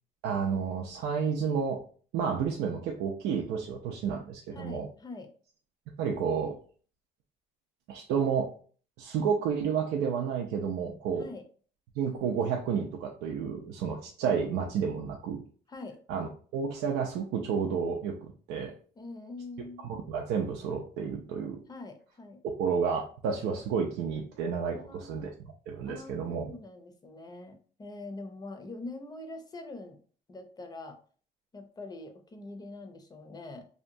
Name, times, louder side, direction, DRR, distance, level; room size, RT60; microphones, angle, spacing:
voice 1, 0.2-1.8 2.1-4.9 6.0-6.6 7.9-8.5 9.0-11.3 12.0-15.4 16.1-18.2 18.5-18.7 19.8-21.6 22.6-25.3 25.7-26.5, right 6 dB, 85° right, 0 dB, 0.4 m, -31 dB
voice 2, 4.5-5.3 11.2-11.4 15.7-16.0 19.0-19.9 21.7-22.4 24.7-25.3 25.9-30.0 30.3-31.0 31.5-33.7, left 2 dB, 25° left, 6 dB, 0.5 m, -44 dB
2.8 x 2.2 x 2.6 m, 0.42 s
cardioid pair, 110°, 17 cm